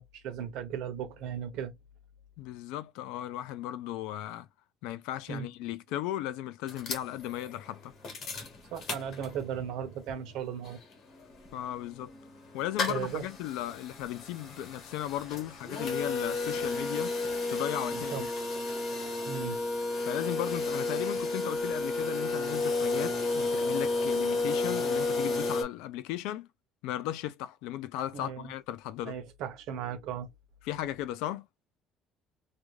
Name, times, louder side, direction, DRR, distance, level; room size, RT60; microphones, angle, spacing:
voice 1, 0.0-1.7 5.3-5.5 8.7-10.8 12.9-13.2 17.9-18.3 19.2-19.6 28.1-28.5 29.0-30.3, right 8 dB, 60° right, 0.6 m, -36 dB
voice 2, 2.4-4.5 4.8-7.9 11.5-12.1 12.5-17.2 17.5-18.3 20.0-26.5 26.8-29.2 30.6-31.5, left 13 dB, 90° left, 0.3 m, -36 dB
sound 1, 6.7-9.7 10.1-10.2 10.3-25.6, left 3 dB, 40° left, 0.9 m, -32 dB
2.4 x 2.2 x 3.1 m
cardioid pair, 180°, 0 cm